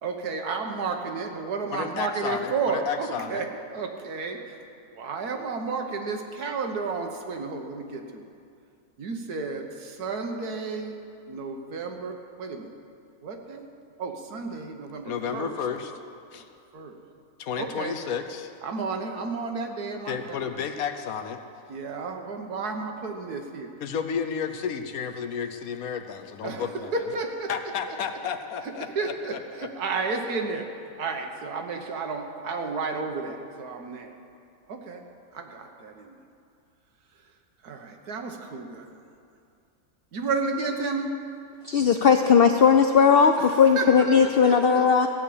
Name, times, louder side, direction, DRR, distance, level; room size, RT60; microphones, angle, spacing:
voice 1, 0.0-4.6 4.9-8.3 9.0-11.0 11.3-12.7 13.2-13.7 14.0-15.5 16.7-17.0 17.6-17.9 18.6-20.5 21.7-23.7 26.4-27.5 27.9-28.0 28.6-30.7 31.0-34.1 34.7-35.0 35.3-36.2 37.6-38.9 40.1-41.1 43.4-43.9 44.2-44.8, right 4 dB, 80° right, 4 dB, 1.7 m, -32 dB
voice 2, 1.7-3.4 15.0-15.9 16.3-16.5 17.4-18.5 20.1-21.4 23.8-26.9 27.5-29.4, left 7 dB, 70° left, 7 dB, 1.2 m, -32 dB
voice 3, 41.6-45.1, left 6 dB, 90° left, 6 dB, 0.5 m, -18 dB
15.0 x 6.6 x 8.5 m, 2.5 s
omnidirectional pair, 1.6 m